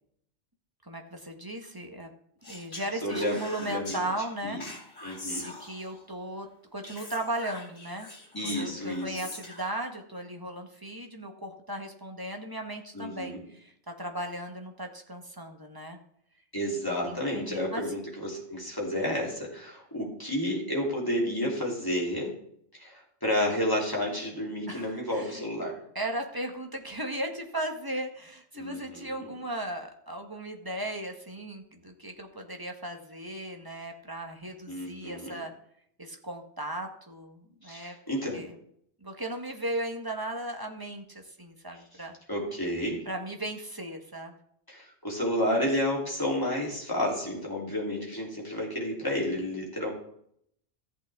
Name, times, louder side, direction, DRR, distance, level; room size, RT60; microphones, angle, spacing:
voice 1, 0.8-2.1 2.5-4.6 5.4-8.1 8.4-16.0 17.0-17.8 24.7-25.4 25.9-35.5 36.0-37.9 38.3-38.5 39.0-42.1 43.1-44.4, right 1 dB, 20° right, 3 dB, 1.0 m, -37 dB
Speech, 2.4-4.0 4.6-6.0 6.8-9.7, left 1 dB, 80° left, 2.7 m, -42 dB
voice 2, 3.0-4.0 4.4-4.6 5.0-5.4 8.3-9.2 12.9-13.4 16.5-22.3 22.7-25.8 28.5-29.3 34.7-35.3 37.6-38.5 42.3-43.0 44.7-49.9, left 1 dB, 15° left, -3 dB, 2.9 m, -31 dB
14.0 x 8.4 x 3.5 m, 0.69 s
omnidirectional pair, 1.2 m